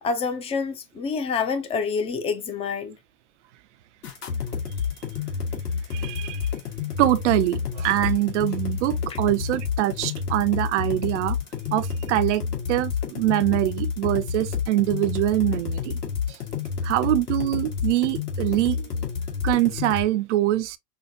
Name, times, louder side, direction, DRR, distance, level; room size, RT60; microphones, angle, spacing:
voice 1, 0.0-3.0 9.1-9.2, left 5 dB, 10° left, 0.5 m, -27 dB
sound 1, 4.0-20.0, left 6 dB, 65° left, 2.0 m, -29 dB
voice 2, 5.9-6.5 7.0-11.4 11.7-12.4 12.7-15.9 16.3-16.4 16.8-18.9 19.4-20.8, right 15 dB, 45° right, 0.5 m, -24 dB
5.7 x 2.1 x 2.8 m
figure-of-eight pair, 95°, 50 cm